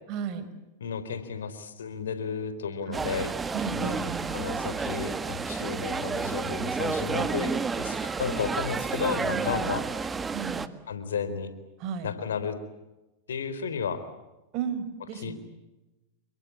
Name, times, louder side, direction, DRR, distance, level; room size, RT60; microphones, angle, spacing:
voice 1, 0.1-0.5 2.9-3.1 3.5-4.4 7.1-7.7 9.3-9.7 10.3-10.7 11.8-12.1 14.5-15.4, right 7 dB, 45° right, 11 dB, 5.3 m, -34 dB
voice 2, 0.8-3.4 3.7-7.5 7.8-9.8 10.9-11.5 12.0-12.6 13.3-14.0 15.2-15.4, left 6 dB, 80° left, 12 dB, 4.0 m, -33 dB
sound 1, 2.9-10.7, right 4 dB, 15° right, 1.7 m, -31 dB
29.5 x 23.0 x 8.6 m, 1.0 s
hypercardioid pair, 100°, 0 cm